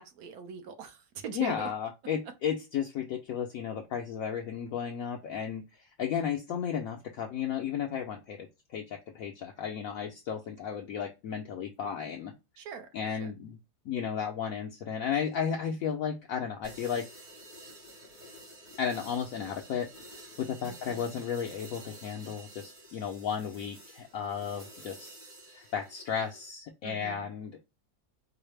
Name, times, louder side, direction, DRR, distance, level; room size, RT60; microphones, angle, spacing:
voice 1, 0.0-1.7 12.6-13.3 15.6-15.7 20.6-21.1 23.4-23.5 26.8-27.3, right 7 dB, 70° right, 1.1 m, -43 dB
voice 2, 1.3-12.3 12.9-13.6 13.8-17.1 18.8-25.2 25.5-27.6, left 7 dB, 70° left, 0.9 m, -34 dB
sound 1, 16.6-26.5, right 1 dB, 85° right, 2.7 m, -50 dB
4.7 x 2.0 x 3.2 m
omnidirectional pair, 1.8 m